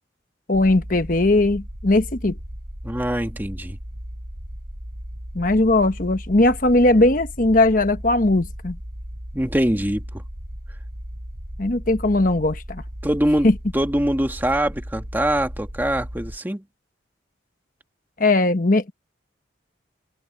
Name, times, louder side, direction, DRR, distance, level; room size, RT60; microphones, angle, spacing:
voice 1, 0.5-2.4 5.3-8.8 11.6-12.8 13.4-13.5 18.2-18.9, left 2 dB, 45° left, 1.2 m, -19 dB
sound 1, 0.5-16.4, equal, 55° right, 4.4 m, -36 dB
voice 2, 2.8-3.8 9.3-10.0 13.0-16.6, right 1 dB, 10° right, 1.6 m, -23 dB
head